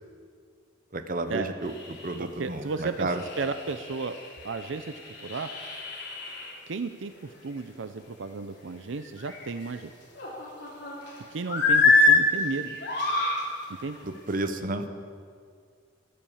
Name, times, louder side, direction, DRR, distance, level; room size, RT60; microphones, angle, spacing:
voice 1, 0.9-1.7 2.0-3.2 14.0-14.9, right 2 dB, 45° right, 8 dB, 1.0 m, -31 dB
sound 1, 1.7-2.2 2.7-2.8 3.1-6.5 9.0-9.7 10.1-11.1 11.5-12.2 12.7-13.4 14.1-14.3, left 3 dB, 60° left, 3.6 m, -25 dB
voice 2, 2.2-4.2 4.4-5.5 6.7-9.9 11.3-12.8 13.8-14.0, right 4 dB, 75° right, 9 dB, 0.6 m, -34 dB
15.5 x 10.5 x 7.1 m, 2.1 s
head